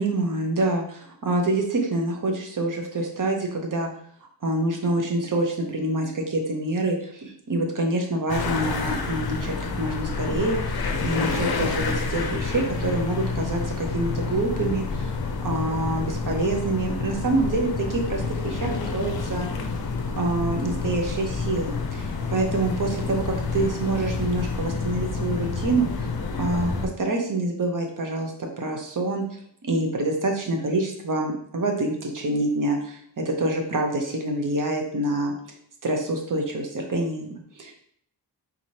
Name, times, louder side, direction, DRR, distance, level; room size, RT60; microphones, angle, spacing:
voice 1, 0.0-3.9 4.4-15.2 15.4-19.5 20.2-23.2 23.5-26.1 26.4-35.3 35.8-37.7, right 2 dB, 45° right, 2 dB, 0.8 m, -26 dB
sound 1, 8.3-26.9, left 4 dB, 55° left, 0.6 m, -29 dB
3.9 x 3.1 x 2.8 m, 0.65 s
wide cardioid pair, 85°, 44 cm